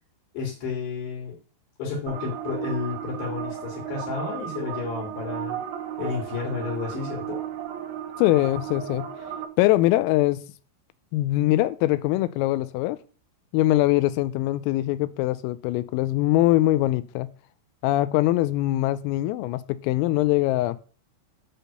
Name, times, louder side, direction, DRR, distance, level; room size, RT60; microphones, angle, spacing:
voice 1, 0.3-1.4 1.8-5.6 6.0-7.4, left 5 dB, 60° left, 4.1 m, -31 dB
sound 1, 2.1-9.5, right 10 dB, 85° right, 2.1 m, -34 dB
voice 2, 8.2-9.1 9.6-10.5 11.1-13.0 13.5-17.3 17.8-20.8, left 16 dB, 85° left, 3.2 m, -22 dB
10.0 x 4.1 x 6.7 m
omnidirectional pair, 6.0 m